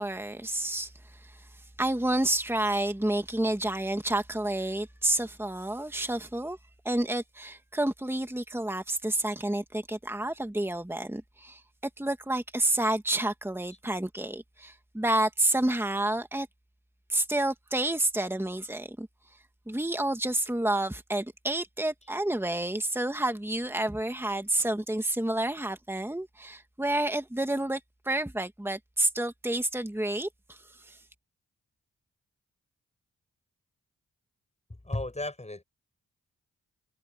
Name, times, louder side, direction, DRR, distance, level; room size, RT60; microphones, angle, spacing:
voice 1, 0.0-6.6 6.8-11.6 12.0-16.5 17.1-19.1 19.7-31.0, right 1 dB, 5° right, 2.0 m, -29 dB
voice 2, 34.8-35.6, left 2 dB, 20° left, 7.4 m, -34 dB
cardioid pair, 50°, 32 cm